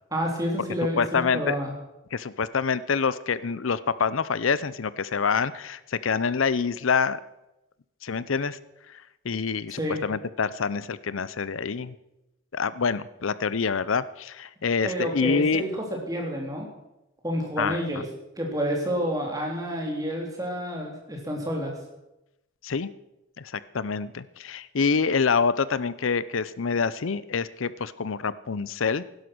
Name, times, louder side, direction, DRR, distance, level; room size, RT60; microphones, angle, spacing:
voice 1, 0.1-1.7 9.7-10.0 14.8-16.7 17.2-18.1 18.4-21.8, equal, 15° right, 0 dB, 3.5 m, -29 dB
voice 2, 1.0-1.6 2.1-7.2 8.0-8.6 8.9-11.9 12.5-15.7 17.6-17.8 22.6-22.9 23.4-29.1, left 5 dB, 85° left, 17 dB, 0.6 m, -26 dB
16.5 x 11.5 x 6.1 m, 0.92 s
head